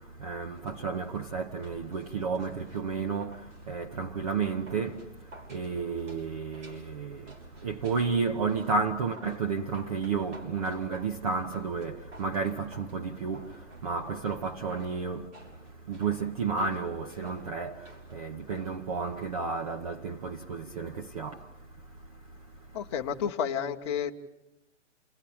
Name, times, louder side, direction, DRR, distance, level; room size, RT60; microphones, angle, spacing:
voice 1, 0.0-22.8, right 5 dB, 30° right, 0.8 m, -32 dB
sound 1, 0.5-19.4 19.7-19.8, right 2 dB, 75° right, 6.4 m, -54 dB
voice 2, 22.7-24.1, left 8 dB, 25° left, 1.1 m, -31 dB
29.0 x 19.0 x 8.6 m
hypercardioid pair, 165°, 36 cm